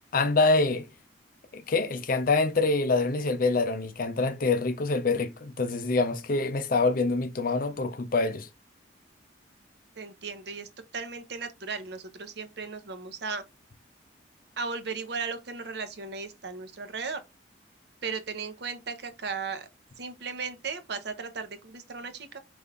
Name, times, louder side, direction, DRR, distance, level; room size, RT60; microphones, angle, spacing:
voice 1, 0.1-0.9 1.5-8.5, left 3 dB, 50° left, 0.6 m, -25 dB
voice 2, 10.0-10.7 10.9-13.4 14.6-17.2 18.0-19.7 20.0-22.4, right 5 dB, 60° right, 0.7 m, -36 dB
5.2 x 3.3 x 2.4 m
head